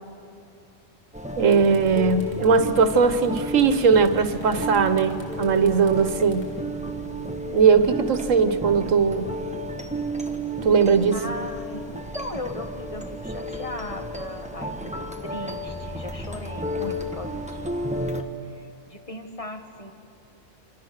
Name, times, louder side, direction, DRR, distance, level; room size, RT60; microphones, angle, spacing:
sound 1, 1.0-1.2 1.5-7.6, equal, 10° left, 3.9 m, -49 dB
sound 2, 1.1-18.2, equal, 5° right, 1.3 m, -32 dB
voice 1, 1.4-6.5 7.5-9.3 10.6-11.1, right 5 dB, 90° right, 10 dB, 1.5 m, -19 dB
voice 2, 11.1-18.1 18.5-19.9, left 1 dB, 25° left, 4 dB, 1.7 m, -38 dB
27.5 x 26.5 x 6.6 m, 2.4 s
omnidirectional pair, 1.3 m